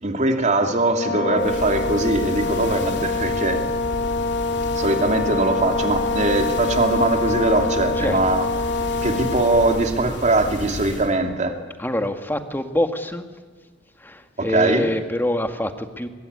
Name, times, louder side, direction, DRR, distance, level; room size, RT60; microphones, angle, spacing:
voice 1, 0.0-3.6 4.7-8.4 9.0-11.6 14.4-14.9, right 2 dB, 40° right, 4 dB, 2.8 m, -21 dB
Brass instrument, 1.0-9.9, left 3 dB, 80° left, 2.3 m, -25 dB
sound 1, 1.4-11.2, left 1 dB, 65° left, 2.8 m, -33 dB
voice 2, 11.8-13.2 14.0-16.1, left 1 dB, 10° left, 7 dB, 1.7 m, -25 dB
24.5 x 21.0 x 9.7 m, 1.4 s
head